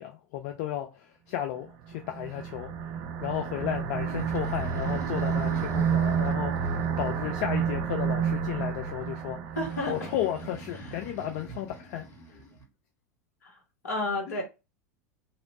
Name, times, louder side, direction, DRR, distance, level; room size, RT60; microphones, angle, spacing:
voice 1, 0.0-2.7 3.2-9.4 9.9-12.0 12.3-12.4 14.3-14.4, left 11 dB, 50° left, 0.4 m, -34 dB
sound 1, 1.9-10.5, right 7 dB, 45° right, 0.5 m, -30 dB
Breathing, 4.0-7.7 9.5-12.6, right 3 dB, 30° left, 2.0 m, -44 dB
voice 2, 9.6-10.1 10.8-11.0 13.4-13.5 13.8-14.4, left 1 dB, 70° left, 1.4 m, -31 dB
3.0 x 2.9 x 2.8 m
figure-of-eight pair, 80°, 9 cm